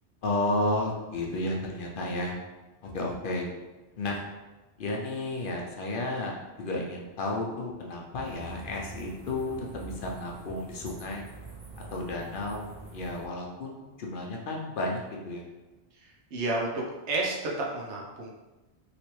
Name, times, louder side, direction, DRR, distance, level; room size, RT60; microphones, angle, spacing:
voice 1, 0.2-2.4 2.8-3.5 4.0-4.2 4.8-11.3 11.8-15.4, left 2 dB, 60° left, 0 dB, 0.7 m, -32 dB
sound 1, 8.2-13.3, right 3 dB, 45° right, 0.7 m, -45 dB
voice 2, 16.3-18.3, right 2 dB, 80° right, -2 dB, 1.1 m, -31 dB
3.1 x 2.9 x 3.0 m, 1.1 s
omnidirectional pair, 1.2 m